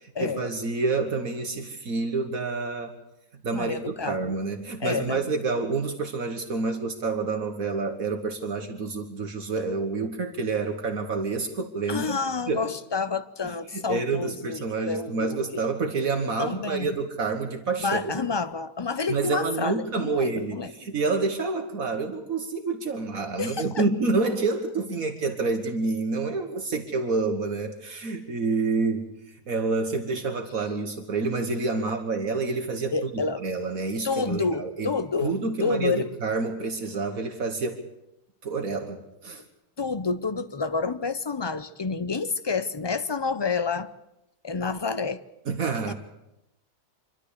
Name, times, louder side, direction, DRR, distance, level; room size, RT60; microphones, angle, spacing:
voice 1, 0.2-3.0 3.4-12.2 12.5-12.7 13.4-18.1 19.1-34.9 35.2-37.8 38.4-39.4 45.5-45.9, right 3 dB, 70° right, 1.8 m, -28 dB
voice 2, 3.5-4.3 4.8-5.2 11.9-15.6 16.4-17.0 17.8-20.7 23.4-23.9 32.9-33.4 34.0-36.1 39.8-43.9 44.4-45.2 45.9-46.0, left 4 dB, 40° left, 0.3 m, -29 dB
26.5 x 12.0 x 8.3 m
omnidirectional pair, 1.5 m